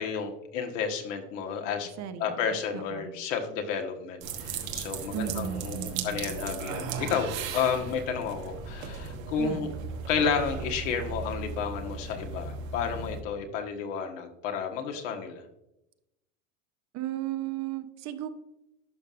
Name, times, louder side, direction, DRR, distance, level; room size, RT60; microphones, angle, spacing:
voice 1, 0.0-1.9 2.2-9.7 10.1-15.4, left 6 dB, 70° left, 4 dB, 1.5 m, -31 dB
voice 2, 2.0-3.1 5.1-6.3 9.4-9.7 16.9-18.3, right 11 dB, 45° right, 10 dB, 0.8 m, -35 dB
sound 1, 4.2-13.2, right 5 dB, 90° right, 1.3 m, -37 dB
11.5 x 5.5 x 2.5 m, 0.88 s
supercardioid pair, 115°, 39 cm